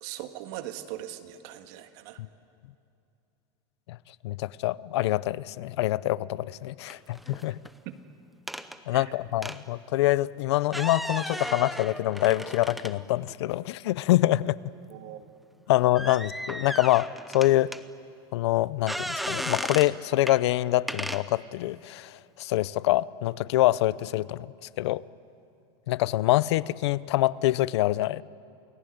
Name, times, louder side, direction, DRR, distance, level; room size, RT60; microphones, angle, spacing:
voice 1, 0.0-2.2 7.9-8.0 8.9-9.1 14.9-15.3, right 13 dB, 55° right, 8 dB, 1.7 m, -40 dB
voice 2, 4.2-7.6 8.9-14.5 15.7-17.7 18.3-25.0 25.9-28.2, left 16 dB, 85° left, 20 dB, 0.6 m, -25 dB
sound 1, 6.9-7.7 8.5-8.8 9.4-9.6 10.6-13.3 13.9-14.0 15.9-17.8 18.9-19.9 20.3-20.4 20.9-21.2, equal, ahead, 0.7 m, -35 dB
29.0 x 19.0 x 9.4 m, 2.5 s
supercardioid pair, 160°, 14 cm